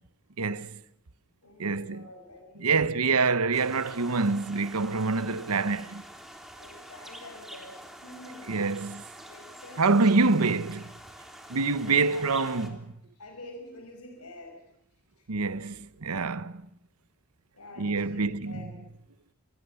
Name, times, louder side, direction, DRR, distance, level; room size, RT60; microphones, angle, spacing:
voice 1, 0.4-0.8 1.6-2.1 2.6-6.0 8.5-9.0 9.8-10.9 11.5-12.7 15.3-16.7 17.8-18.7, right 4 dB, 75° right, 1.0 m, -26 dB
voice 2, 1.4-3.1 6.6-8.9 9.3-9.9 11.9-12.7 13.1-14.6 15.2-15.3 17.5-18.8, left 2 dB, 80° left, 5.3 m, -47 dB
sound 1, 3.5-12.7, equal, ahead, 3.7 m, -47 dB
27.5 x 20.5 x 7.0 m
head